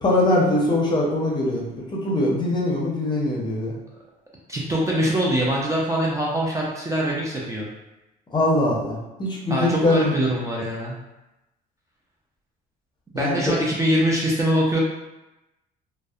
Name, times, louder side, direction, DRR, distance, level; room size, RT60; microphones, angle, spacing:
voice 1, 0.0-3.7 8.3-10.1 13.1-13.4, left 1 dB, 25° left, -3 dB, 0.6 m, -22 dB
voice 2, 4.5-7.7 9.5-11.0 13.1-14.8, right 1 dB, 20° right, -4 dB, 0.4 m, -23 dB
2.5 x 2.0 x 2.3 m, 0.97 s
cardioid pair, 110°, 17 cm